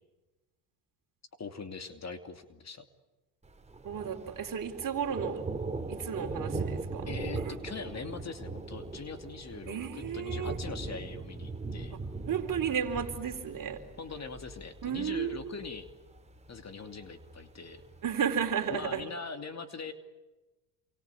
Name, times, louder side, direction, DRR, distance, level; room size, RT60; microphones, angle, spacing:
voice 1, 1.4-2.9 7.1-12.0 14.0-15.9 16.5-17.8 18.7-19.9, left 4 dB, 30° left, 8 dB, 2.8 m, -42 dB
Thunder, 3.4-19.0, right 3 dB, 15° right, 3.4 m, -40 dB
voice 2, 3.8-5.4 5.9-7.5 9.7-10.6 12.3-13.8 14.8-15.4 18.0-19.0, right 8 dB, 40° right, 6 dB, 4.1 m, -33 dB
28.5 x 24.0 x 8.5 m, 1.1 s
supercardioid pair, 85°, 49 cm